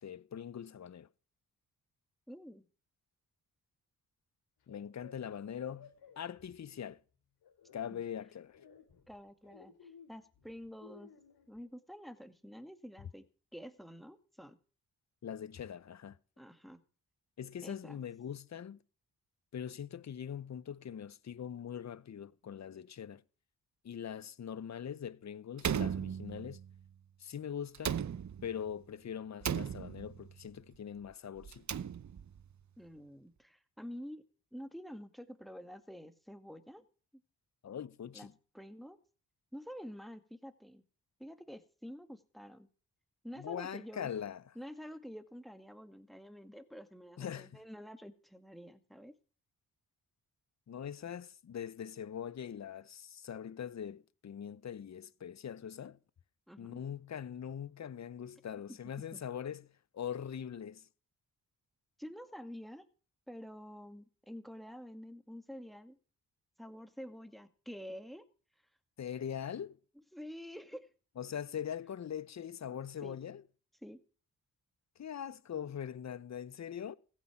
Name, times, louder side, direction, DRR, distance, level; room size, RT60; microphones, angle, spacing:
voice 1, 0.0-1.1 4.7-7.0 7.7-8.6 15.2-16.2 17.4-18.8 19.5-23.2 23.8-26.6 27.2-28.0 28.4-31.6 37.6-38.3 43.4-44.4 47.2-47.6 50.7-56.0 56.6-60.9 69.0-69.8 71.2-73.4 75.0-76.9, left 8 dB, 45° left, 0.8 m, -42 dB
voice 2, 2.3-2.7 7.9-8.0 9.1-11.1 11.5-13.3 13.5-14.6 16.4-16.8 17.6-18.0 32.8-34.2 34.5-36.8 37.1-37.2 38.1-38.3 38.5-39.0 39.5-40.8 41.2-42.7 43.2-44.1 44.6-49.1 56.5-56.8 59.1-59.2 62.0-62.9 63.3-66.0 66.6-68.3 70.1-70.9 73.0-73.2 73.8-74.0, equal, ahead, 2.0 m, -48 dB
sound 1, 4.6-6.9 7.4-8.0 8.5-11.6, left 6 dB, 80° left, 2.6 m, -57 dB
Slam, 25.6-26.7 27.7-28.7 29.4-30.3 31.4-32.4, right 8 dB, 45° right, 0.8 m, -36 dB
15.5 x 9.0 x 5.9 m
supercardioid pair, 45°, 38 cm